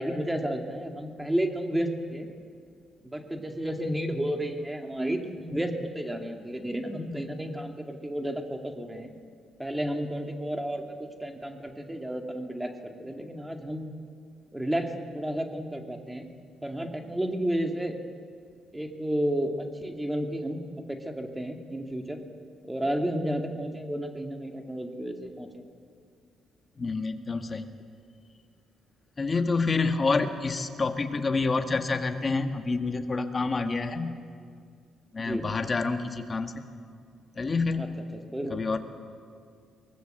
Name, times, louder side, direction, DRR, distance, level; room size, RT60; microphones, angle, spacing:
voice 1, 0.0-2.3 3.0-9.1 9.6-13.9 14.5-16.3 16.6-17.9 18.7-20.6 20.9-22.2 22.7-25.7 35.2-35.4 37.8-38.7, equal, 10° right, 4 dB, 2.3 m, -32 dB
voice 2, 26.8-27.7 29.2-34.2 35.1-36.6 37.3-37.9 38.5-38.8, left 3 dB, 30° left, 7 dB, 1.8 m, -28 dB
23.0 x 18.5 x 8.1 m, 2.2 s
cardioid pair, 90°, 0 cm